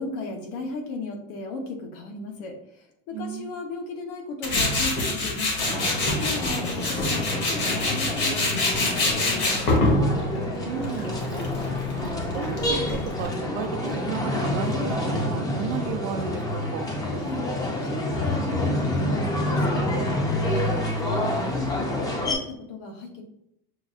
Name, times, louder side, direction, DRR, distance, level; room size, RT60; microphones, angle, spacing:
voice 1, 0.0-9.6 17.2-23.2, left 3 dB, 70° left, 3 dB, 1.1 m, -36 dB
voice 2, 3.1-3.5 10.6-11.5 12.0-16.9, right 7 dB, 70° right, 8 dB, 0.6 m, -34 dB
Tools, 4.4-13.3, left 2 dB, 40° left, 1.0 m, -26 dB
sound 1, 5.6-22.3, left 1 dB, 10° left, 0.6 m, -28 dB
6.2 x 2.4 x 2.4 m, 0.77 s
cardioid pair, 155°, 30 cm